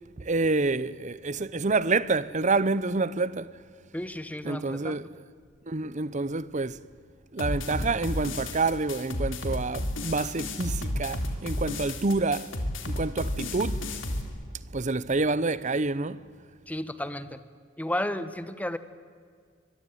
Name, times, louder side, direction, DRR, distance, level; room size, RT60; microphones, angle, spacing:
voice 1, 0.2-3.6 4.4-5.1 5.7-6.8 7.3-12.5 12.9-13.8 14.7-16.3, right 3 dB, 40° right, 0.8 m, -28 dB
voice 2, 3.9-5.0 16.7-17.4 17.8-18.8, left 1 dB, 10° left, 1.2 m, -33 dB
sound 1, 7.4-14.2, left 1 dB, 70° left, 3.4 m, -32 dB
24.5 x 23.0 x 9.3 m
head